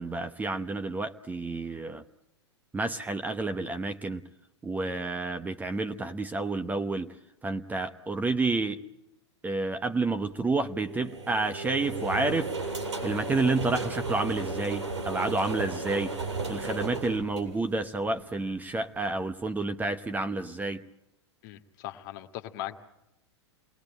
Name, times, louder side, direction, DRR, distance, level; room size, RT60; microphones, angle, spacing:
voice 1, 0.0-2.0 2.7-4.2 4.6-7.1 7.4-8.8 9.4-12.7 13.0-20.8, right 3 dB, 10° right, 8 dB, 0.9 m, -30 dB
sound 1, 10.8-18.1, right 3 dB, 75° right, 6.8 m, -34 dB
voice 2, 21.4-22.8, left 13 dB, 45° left, 6 dB, 1.9 m, -39 dB
27.5 x 20.5 x 8.8 m, 0.87 s
figure-of-eight pair, 100°, 15 cm